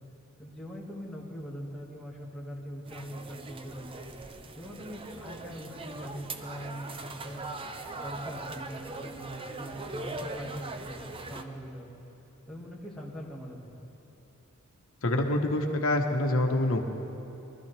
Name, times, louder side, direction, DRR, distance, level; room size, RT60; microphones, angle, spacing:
voice 1, 0.4-4.0 4.5-7.5 8.0-11.9 12.5-13.7, equal, ahead, -5 dB, 1.9 m, -42 dB
sound 1, 2.9-11.4, right 2 dB, 25° right, 0.6 m, -41 dB
voice 2, 15.0-16.8, left 1 dB, 75° left, 2 dB, 1.2 m, -26 dB
22.5 x 13.0 x 3.4 m, 3.0 s
head